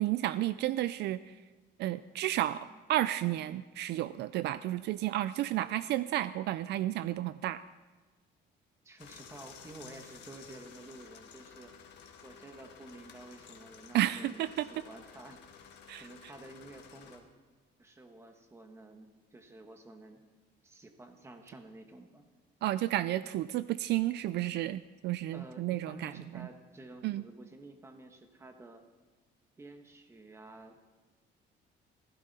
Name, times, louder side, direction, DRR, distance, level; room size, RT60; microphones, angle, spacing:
voice 1, 0.0-1.4 1.8-7.6 13.9-14.7 15.9-16.1 22.6-26.5 27.0-27.2, right 14 dB, 65° right, 15 dB, 0.4 m, -32 dB
voice 2, 5.5-5.8 8.8-11.7 12.2-15.5 16.0-17.3 17.8-20.2 20.6-22.3 25.3-28.8 29.6-30.9, right 2 dB, 15° right, 5 dB, 1.3 m, -51 dB
sound 1, 9.0-17.2, left 7 dB, 65° left, 1.6 m, -53 dB
15.5 x 15.0 x 4.2 m, 1.3 s
cardioid pair, 165°, 19 cm